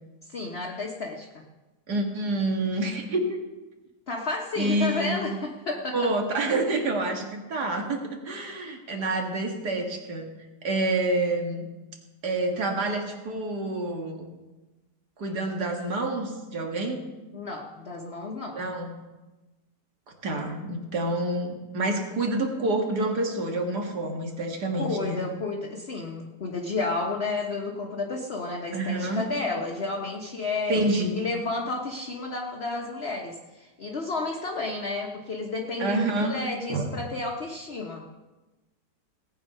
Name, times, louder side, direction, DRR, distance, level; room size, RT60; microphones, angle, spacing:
voice 1, 0.3-1.4 4.1-6.1 17.3-18.6 24.7-30.9 31.2-38.0, left 3 dB, 40° left, 0 dB, 1.2 m, -31 dB
voice 2, 1.9-3.4 4.6-5.3 5.9-10.3 10.6-11.7 12.2-14.3 15.2-17.0 18.6-18.9 20.2-25.2 28.7-29.3 30.7-31.2 35.8-36.4 36.7-36.9, right 2 dB, 65° right, 2 dB, 2.3 m, -28 dB
18.0 x 8.0 x 5.5 m, 1.1 s
omnidirectional pair, 1.9 m